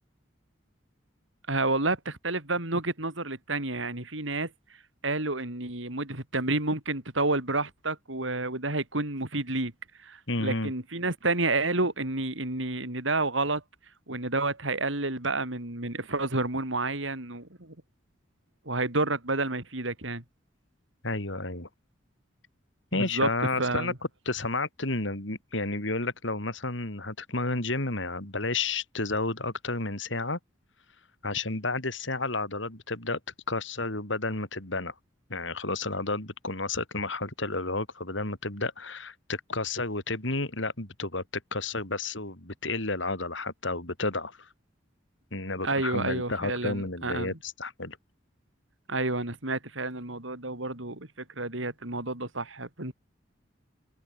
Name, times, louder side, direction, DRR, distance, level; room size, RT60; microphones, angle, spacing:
voice 1, 1.5-4.5 5.0-9.7 10.0-13.6 14.1-17.7 18.7-20.2 22.9-23.3 23.6-24.0 45.6-47.4 48.9-52.9, right 2 dB, 80° right, 4.4 m, -30 dB
voice 2, 10.3-10.7 21.0-21.7 22.9-23.9 24.3-30.4 31.2-33.2 33.5-34.9 35.3-41.2 41.5-44.5 45.3-48.0, left 3 dB, 75° left, 4.4 m, -31 dB
open air
head